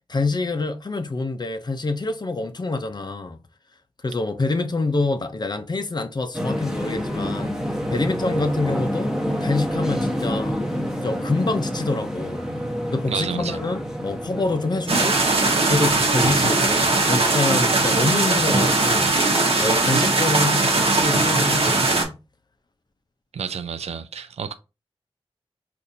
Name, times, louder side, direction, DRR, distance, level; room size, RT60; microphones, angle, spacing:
voice 1, 0.1-3.4 4.0-7.6 7.9-9.1 9.4-10.6 11.0-12.5 12.9-15.2 15.6-22.2, left 3 dB, 45° left, 0.6 m, -26 dB
sound 1, 6.3-16.5, equal, 5° right, 1.0 m, -28 dB
voice 2, 13.1-13.6 23.3-24.5, right 6 dB, 90° right, 0.4 m, -30 dB
sound 2, 14.9-22.0, right 3 dB, 65° right, 1.0 m, -19 dB
4.1 x 2.5 x 2.6 m
cardioid pair, 50°, 10 cm